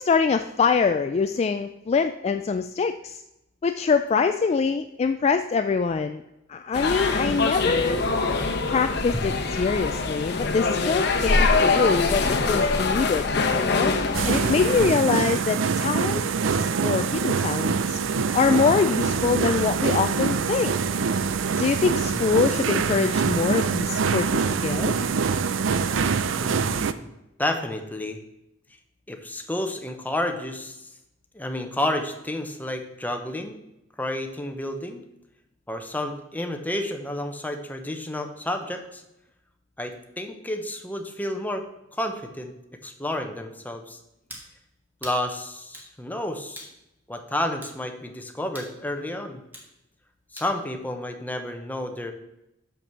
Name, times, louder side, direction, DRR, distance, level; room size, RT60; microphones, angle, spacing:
voice 1, 0.0-3.2 3.6-6.2 6.5-8.0 8.7-13.3 13.5-13.9 14.3-16.2 16.5-18.0 18.3-20.8 21.5-25.0, left 5 dB, 35° left, 8 dB, 0.3 m, -24 dB
sound 1, 6.7-14.8, left 3 dB, 60° left, 0.9 m, -24 dB
sound 2, 14.1-26.9, right 5 dB, 75° right, 0.5 m, -24 dB
voice 2, 22.1-22.4 26.4-27.0 27.4-28.2 29.1-30.8 31.3-33.6 34.0-35.0 35.7-39.0 39.8-41.7 42.0-42.5 42.8-44.0 45.0-46.7 47.1-49.4 50.3-52.1, left 1 dB, 10° left, 5 dB, 0.9 m, -30 dB
sound 3, 44.3-44.5 45.0-45.2 45.7-45.9 46.6-46.8 47.6-47.8 48.6-48.8 49.5-49.7 50.4-50.6, equal, 10° right, 1.5 m, -42 dB
6.1 x 6.0 x 6.7 m, 0.87 s
head